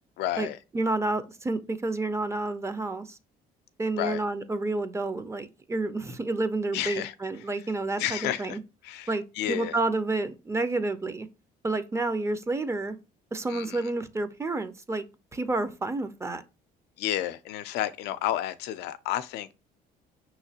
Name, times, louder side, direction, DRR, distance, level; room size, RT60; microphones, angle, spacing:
voice 1, 0.2-0.6 4.0-4.2 6.7-7.1 8.0-8.6 8.8-9.8 13.5-13.9 17.0-19.5, left 12 dB, 85° left, 0.4 m, -31 dB
voice 2, 0.7-3.2 3.8-8.6 9.1-11.3 11.6-13.0 13.3-15.0 15.3-16.4, right 2 dB, 15° right, 0.5 m, -29 dB
5.7 x 3.0 x 2.8 m
cardioid pair, 110°, 17 cm